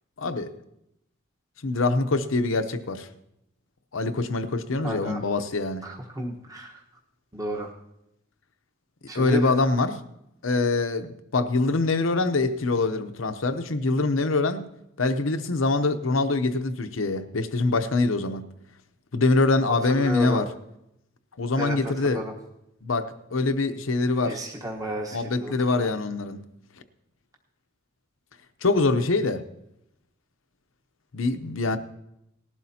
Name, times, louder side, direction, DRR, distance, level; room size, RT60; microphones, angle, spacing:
voice 1, 0.2-0.6 1.6-3.1 3.9-5.9 9.1-10.0 10.4-14.6 15.0-18.4 19.1-20.5 21.4-22.2 22.8-24.4 25.1-26.4 28.6-29.5 31.1-31.8, left 3 dB, 75° left, 0.8 m, -24 dB
voice 2, 4.8-5.2 5.8-6.8 7.3-7.7 9.1-9.5 19.9-20.5 21.6-22.3 24.2-25.9, equal, 15° right, 1.2 m, -32 dB
18.5 x 12.0 x 2.8 m
head